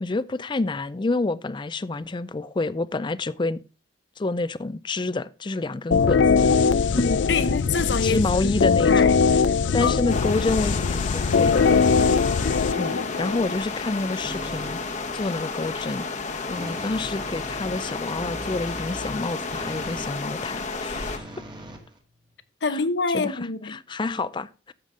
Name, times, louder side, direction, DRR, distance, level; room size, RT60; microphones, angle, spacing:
voice 1, 0.0-3.6 4.2-6.5 7.0-7.1 7.8-9.2 9.7-11.7 12.8-14.8 15.1-16.1 16.5-21.3 22.7-22.8 23.1-24.7, left 2 dB, 25° left, 0.4 m, -28 dB
sound 1, 5.9-13.6, left 5 dB, 90° left, 0.5 m, -21 dB
voice 2, 6.9-8.6 8.9-9.2 9.8-10.4 22.6-23.8, left 4 dB, 70° left, 0.8 m, -26 dB
sound 2, 10.1-21.2, left 4 dB, 40° left, 1.0 m, -32 dB
sound 3, 11.6-12.8 14.2-14.9 16.6-20.2 20.9-22.4, right 1 dB, 25° right, 1.7 m, -41 dB
13.5 x 5.2 x 3.7 m
head